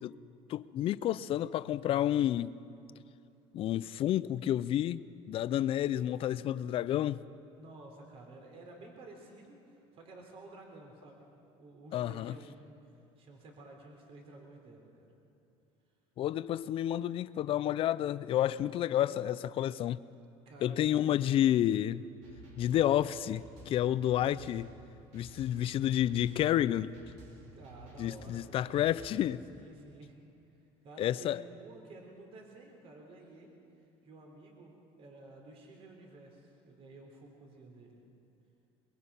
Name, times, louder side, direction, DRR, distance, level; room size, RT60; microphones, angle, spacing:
voice 1, 0.5-2.5 3.5-7.2 11.9-12.3 16.2-20.0 20.6-22.0 22.6-24.7 25.1-26.9 28.0-29.4 31.0-31.4, left 12 dB, 50° left, 0.5 m, -30 dB
voice 2, 7.6-11.3 11.5-15.1 20.5-20.9 21.4-21.6 25.2-25.7 27.5-29.2 29.5-30.2 30.8-38.0, right 2 dB, 50° right, 3.9 m, -52 dB
sound 1, 22.2-29.4, right 1 dB, 75° right, 4.3 m, -53 dB
23.0 x 22.5 x 5.7 m
cardioid pair, 115°, 12 cm